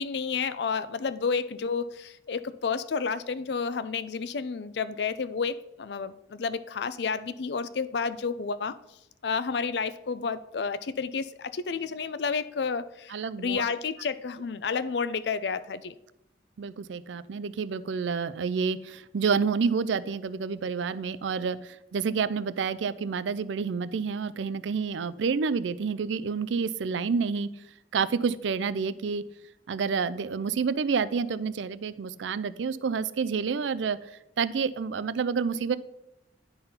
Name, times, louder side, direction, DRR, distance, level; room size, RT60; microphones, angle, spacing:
voice 1, 0.0-8.8 9.2-15.9, left 5 dB, 70° left, 14 dB, 0.4 m, -31 dB
voice 2, 13.1-13.7 16.6-27.5 27.9-29.2 29.7-34.1 34.4-35.8, right 5 dB, 85° right, 15 dB, 0.4 m, -29 dB
10.0 x 3.9 x 5.6 m, 0.87 s
head